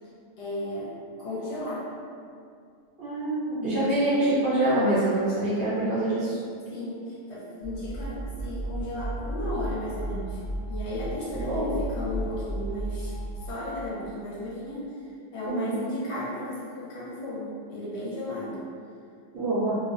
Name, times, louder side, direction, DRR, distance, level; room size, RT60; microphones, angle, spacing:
voice 1, 0.4-0.9 1.2-1.9 3.6-4.0 6.7-10.4 10.7-13.1 13.4-14.9 15.3-18.6, left 1 dB, 65° left, -7 dB, 0.8 m, -34 dB
voice 2, 3.0-6.4 11.3-11.7 15.5-15.8 19.3-19.8, right 1 dB, 60° right, -11 dB, 0.6 m, -25 dB
sound 1, 7.6-13.6, right 1 dB, 30° left, 0.8 m, -34 dB
2.4 x 2.1 x 2.4 m, 2.3 s
omnidirectional pair, 1.4 m